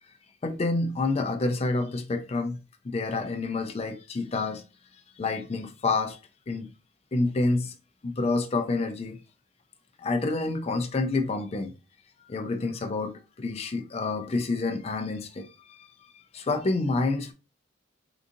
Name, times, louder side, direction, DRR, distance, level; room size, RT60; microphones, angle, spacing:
voice 1, 0.4-2.6 2.8-4.6 5.2-6.2 6.5-6.7 7.1-7.7 8.0-9.2 10.0-11.7 12.3-15.9 16.3-17.3, left 3 dB, 30° left, 0.3 m, -28 dB
3.7 x 2.7 x 2.5 m
head